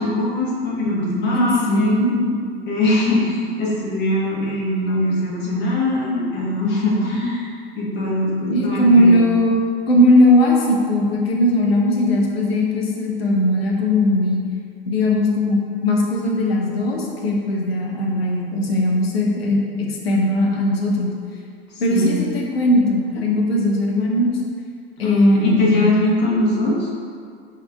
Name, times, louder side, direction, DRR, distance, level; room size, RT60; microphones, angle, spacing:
voice 1, 0.0-1.9 2.7-9.2 21.9-22.3 25.0-26.9, left 1 dB, 35° left, -5 dB, 1.0 m, -21 dB
voice 2, 1.3-2.3 8.5-9.5 9.9-14.4 14.9-21.1 21.8-24.4 25.0-26.0, left 1 dB, 75° left, -2 dB, 0.7 m, -18 dB
4.9 x 2.8 x 2.2 m, 2.2 s
figure-of-eight pair, 85°, 31 cm